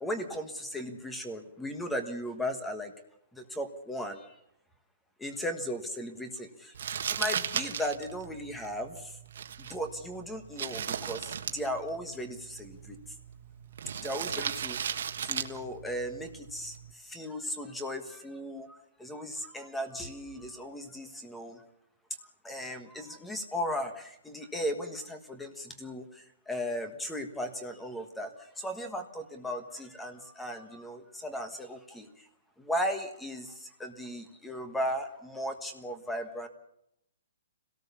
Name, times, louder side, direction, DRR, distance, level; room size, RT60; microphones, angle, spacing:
voice 1, 0.0-2.9 3.3-4.3 5.2-6.7 7.1-9.2 9.6-13.0 14.0-14.8 15.2-21.6 22.4-32.3 32.6-36.5, equal, 5° left, 7 dB, 1.3 m, -36 dB
Crumpling crinkling, 6.7-16.9, right 8 dB, 55° right, 1.5 m, -37 dB
25.5 x 18.0 x 7.1 m, 0.81 s
hypercardioid pair, 175°, 0 cm